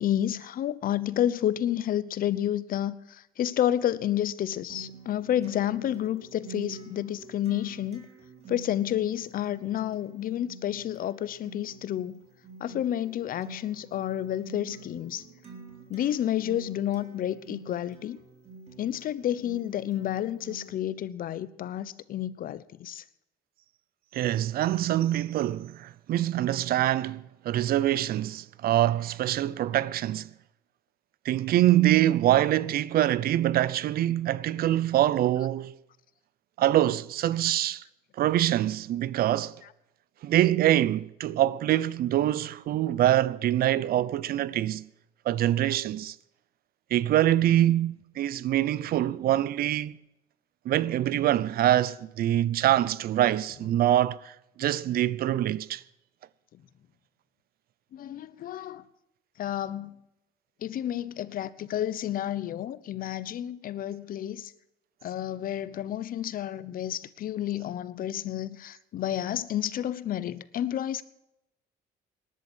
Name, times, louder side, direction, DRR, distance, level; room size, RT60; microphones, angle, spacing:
voice 1, 0.0-8.1 8.5-12.2 12.6-15.2 15.9-18.2 18.8-23.0 45.6-45.7 56.5-56.6 57.9-58.8 59.4-59.9 60.6-64.5 65.0-71.0, left 11 dB, 55° left, 0.9 m, -30 dB
Acoustic guitar, 4.7-20.7, right 4 dB, 40° right, 4.0 m, -48 dB
voice 2, 24.1-30.3 31.2-35.7 36.6-37.8 38.2-39.5 40.2-44.9 45.3-46.1 46.9-50.0 50.6-55.8, right 13 dB, 65° right, 0.7 m, -24 dB
18.5 x 11.0 x 6.3 m
cardioid pair, 110°, 17 cm